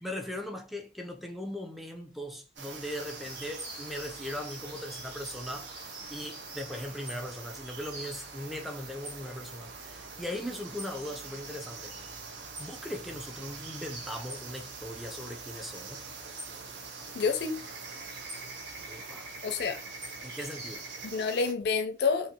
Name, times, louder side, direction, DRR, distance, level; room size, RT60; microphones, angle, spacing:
voice 1, 0.0-11.9 12.6-16.0 18.8-19.3 20.2-20.9, left 1 dB, ahead, 0.4 m, -39 dB
sound 1, 2.6-21.5, right 5 dB, 85° right, 0.6 m, -45 dB
sound 2, 2.7-21.1, right 1 dB, 65° right, 1.5 m, -47 dB
voice 2, 17.1-17.6 19.4-19.8 21.0-22.3, left 5 dB, 65° left, 0.4 m, -28 dB
2.6 x 2.5 x 2.7 m
head